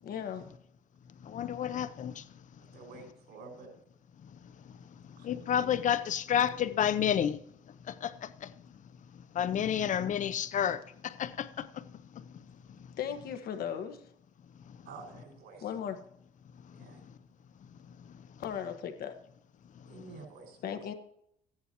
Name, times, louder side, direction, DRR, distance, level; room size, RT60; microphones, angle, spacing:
voice 1, 0.0-0.5 13.0-14.0 15.6-16.0 18.4-19.1 20.6-20.9, left 8 dB, 65° left, 1.4 m, -36 dB
voice 2, 1.2-2.2 5.2-7.4 7.9-8.5 9.3-11.8, left 9 dB, 50° left, 0.6 m, -30 dB
voice 3, 2.7-3.7 5.2-5.7 14.8-15.8 16.7-17.0 19.8-20.8, right 4 dB, 75° right, 5.6 m, -50 dB
15.0 x 10.5 x 2.9 m
cardioid pair, 110°, 17 cm